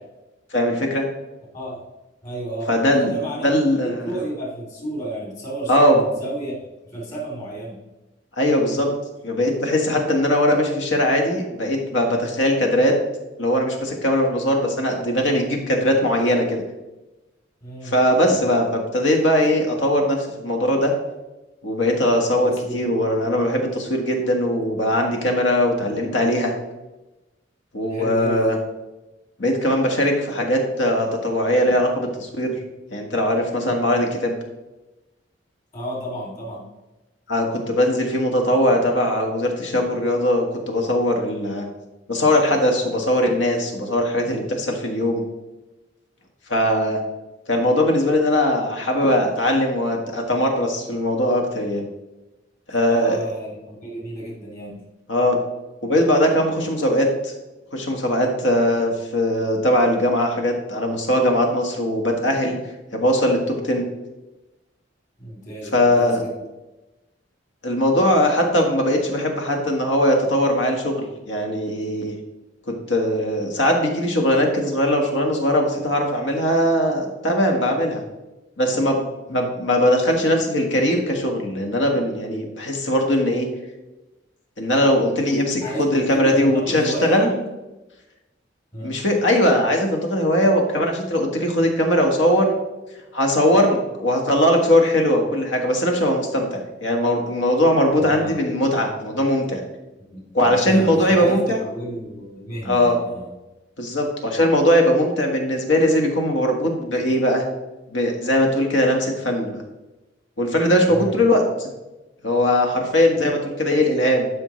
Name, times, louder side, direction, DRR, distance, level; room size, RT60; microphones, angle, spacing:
voice 1, 0.5-1.0 2.7-3.1 3.4-4.1 5.7-6.0 8.4-8.9 9.2-12.9 13.4-16.6 17.8-20.9 21.6-26.5 27.7-28.6 29.4-32.5 32.9-34.4 37.3-41.6 42.1-45.2 46.5-47.0 47.5-51.9 52.7-53.2 55.1-55.4 55.8-57.3 57.7-62.6 62.9-63.8 65.7-66.2 67.6-72.1 72.7-78.0 78.6-79.0 79.3-83.5 84.6-87.3 88.8-92.5 93.1-99.6 100.3-101.6 102.6-103.0 103.8-107.4 107.9-109.6 110.4-111.7 112.2-114.3, left 1 dB, 85° left, 2 dB, 1.6 m, -20 dB
voice 2, 1.5-1.9 2.2-3.6 4.0-6.6 6.9-7.8 17.6-17.9 22.4-22.9 27.9-28.6 35.7-36.7 52.8-54.9 65.2-66.4 79.3-79.5 85.6-87.4 88.7-89.0 98.0-98.4 100.0-103.3 110.9-111.2, right 1 dB, 40° left, -4 dB, 3.0 m, -32 dB
12.0 x 5.4 x 3.2 m, 1.0 s
head